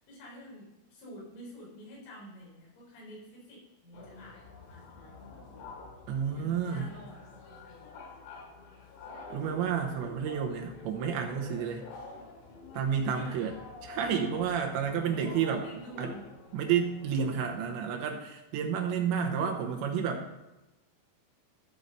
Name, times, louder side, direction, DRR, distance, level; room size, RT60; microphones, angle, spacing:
voice 1, 0.0-4.4 4.7-5.0 6.2-7.2 7.5-7.9 13.1-13.5 14.8-16.3, equal, 75° left, -4 dB, 6.9 m, -49 dB
sound 1, 3.9-17.6, left 3 dB, 55° left, 3.6 m, -47 dB
voice 2, 6.1-6.9 9.3-11.8 12.7-13.5 13.8-15.7 16.0-16.1 16.5-20.2, right 7 dB, 75° right, 2 dB, 3.0 m, -30 dB
13.5 x 5.6 x 6.5 m, 1.0 s
omnidirectional pair, 5.7 m